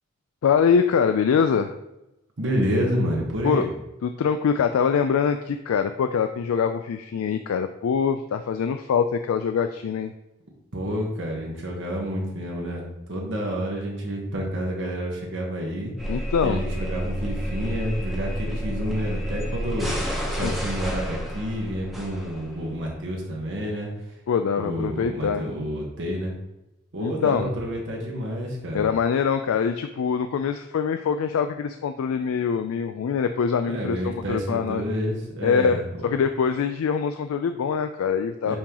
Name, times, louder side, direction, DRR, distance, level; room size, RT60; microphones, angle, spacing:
voice 1, 0.4-1.8 3.4-3.7 4.0-10.1 16.1-16.6 20.4-20.5 24.3-25.4 27.0-27.5 28.7-34.8 35.4-38.6, left 6 dB, 90° left, 8 dB, 0.3 m, -24 dB
voice 2, 2.4-3.7 10.7-15.9 16.4-20.0 20.3-23.9 24.6-26.3 26.9-28.9 33.7-35.8 38.4-38.6, equal, 60° right, -1 dB, 1.2 m, -29 dB
sound 1, 16.0-22.8, equal, ahead, 1.0 m, -30 dB
8.5 x 3.8 x 3.0 m, 0.92 s
head